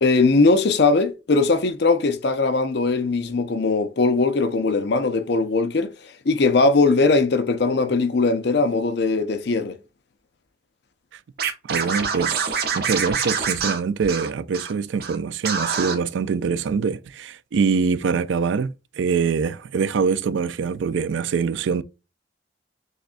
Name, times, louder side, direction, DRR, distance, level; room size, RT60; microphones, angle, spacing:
voice 1, 0.0-9.8, left 3 dB, 60° left, 0.6 m, -20 dB
Scratching (performance technique), 11.4-14.7 15.0-15.2 15.4-16.0, right 5 dB, 55° right, 0.8 m, -26 dB
voice 2, 11.6-21.8, right 5 dB, 75° right, 0.3 m, -24 dB
6.4 x 2.3 x 2.4 m
head